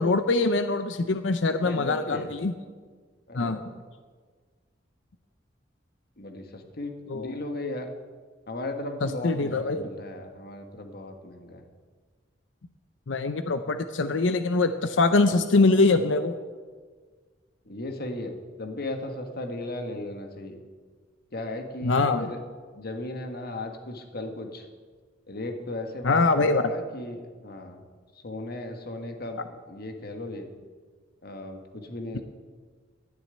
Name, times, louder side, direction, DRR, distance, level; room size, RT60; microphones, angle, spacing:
voice 1, 0.0-2.5 3.3-3.6 7.1-7.4 9.0-9.9 13.1-16.3 21.8-22.3 26.0-26.7 32.1-32.2, left 3 dB, 75° left, 10 dB, 0.7 m, -23 dB
voice 2, 1.6-2.3 3.3-3.7 6.2-7.9 8.5-11.6 17.7-20.6 21.3-22.4 22.7-24.7 25.3-27.8 28.2-29.4 29.7-30.5 31.2-32.2, left 2 dB, 55° left, 5 dB, 1.5 m, -36 dB
13.0 x 7.3 x 9.6 m, 1.5 s
head